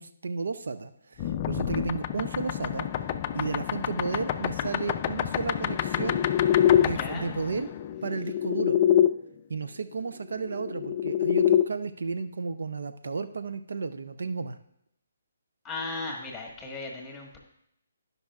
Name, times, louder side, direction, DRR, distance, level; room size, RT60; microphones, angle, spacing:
voice 1, 0.0-2.9 3.3-6.3 6.8-7.7 8.0-8.8 9.5-14.6, right 4 dB, 75° right, 11 dB, 0.5 m, -33 dB
sound 1, 1.2-9.1 10.4-11.6, left 10 dB, 30° left, 0.4 m, -26 dB
voice 2, 6.9-7.3 15.6-17.4, left 3 dB, 5° left, 0 dB, 1.5 m, -36 dB
15.5 x 5.4 x 2.4 m, 0.76 s
hypercardioid pair, 155°, 0 cm